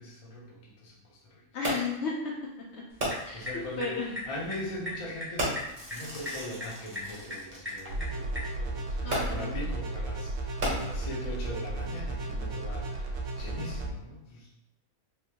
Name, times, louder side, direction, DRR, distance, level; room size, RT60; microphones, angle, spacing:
voice 1, 0.0-1.4 3.0-4.0 4.3-14.7, left 1 dB, 35° left, -4 dB, 0.7 m, -41 dB
voice 2, 1.5-2.8 3.2-4.1 9.0-9.7 10.6-10.9, left 4 dB, 60° left, -3 dB, 0.9 m, -35 dB
Fireworks, 1.6-2.1 3.0-3.5 4.4-4.5 5.4-7.8 9.1-9.6 10.4-11.3 12.0-12.1, right 1 dB, 45° right, 1.3 m, -34 dB
sound 1, 2.9-8.6, left 1 dB, 15° right, 0.5 m, -41 dB
sound 2, 7.9-13.9, right 2 dB, 75° right, 1.0 m, -34 dB
3.4 x 2.7 x 2.9 m, 0.86 s
omnidirectional pair, 1.4 m